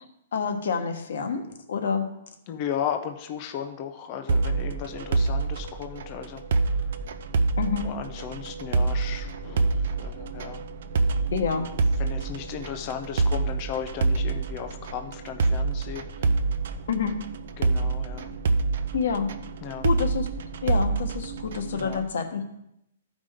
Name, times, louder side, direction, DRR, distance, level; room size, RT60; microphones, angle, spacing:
voice 1, 0.3-2.1 7.6-7.9 11.3-11.7 16.9-17.1 18.9-19.3 19.8-20.3 20.6-22.6, left 6 dB, 60° left, 5 dB, 1.2 m, -27 dB
voice 2, 2.5-7.0 7.8-10.6 12.0-16.3 17.6-18.4 19.6-19.9 21.7-22.0, left 8 dB, 25° left, 6 dB, 0.5 m, -35 dB
sound 1, 4.3-22.0, right 3 dB, 50° right, 0.6 m, -27 dB
14.5 x 5.2 x 3.6 m, 0.81 s
hypercardioid pair, 180°, 0 cm